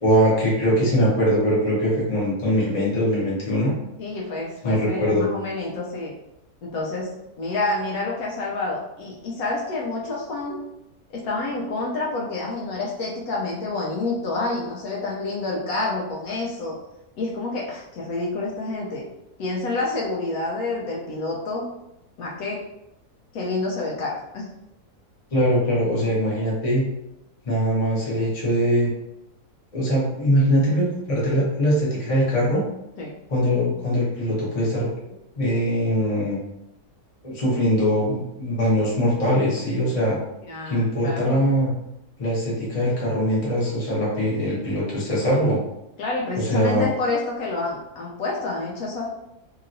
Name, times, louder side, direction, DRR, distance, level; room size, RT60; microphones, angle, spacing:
voice 1, 0.0-3.7 4.6-5.3 25.3-26.9 27.4-28.9 29.7-32.6 33.3-34.9 35.4-36.4 37.2-40.2 40.7-41.7 42.2-45.6 46.4-46.9, equal, 30° left, -5 dB, 0.8 m, -22 dB
voice 2, 4.0-6.1 6.6-10.6 11.1-16.8 17.2-19.0 19.4-21.7 22.2-22.6 23.3-24.5 33.0-33.1 40.5-41.4 46.0-49.1, left 2 dB, 70° left, -3 dB, 1.0 m, -28 dB
3.0 x 2.8 x 2.5 m, 0.86 s
omnidirectional pair, 1.7 m